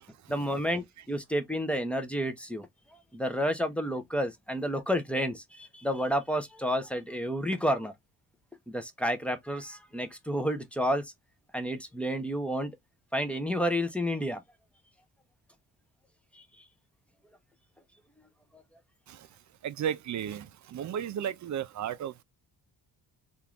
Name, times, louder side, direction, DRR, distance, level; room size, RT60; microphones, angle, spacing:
voice 1, 0.3-2.7 3.1-7.9 8.7-11.0 11.5-12.7 13.1-14.4, equal, 5° left, 0.6 m, -30 dB
voice 2, 19.6-20.4 20.7-22.2, right 9 dB, 50° right, 0.4 m, -33 dB
3.5 x 2.5 x 2.9 m
cardioid pair, 145°, 39 cm